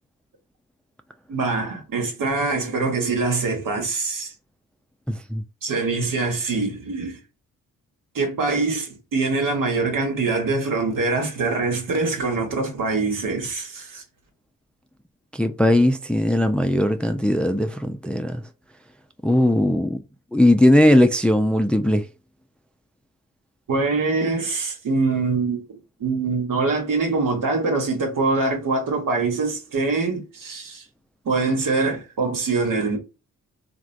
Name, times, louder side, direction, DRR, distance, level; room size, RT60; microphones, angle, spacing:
voice 1, 1.3-4.3 5.6-7.2 8.1-14.0 23.7-30.8 31.2-33.0, right 3 dB, 75° right, 1.3 m, -24 dB
voice 2, 5.1-5.4 15.3-18.4 19.2-20.0 20.3-22.1, left 1 dB, 5° left, 0.4 m, -19 dB
3.1 x 2.4 x 2.5 m
cardioid pair, 60°, 33 cm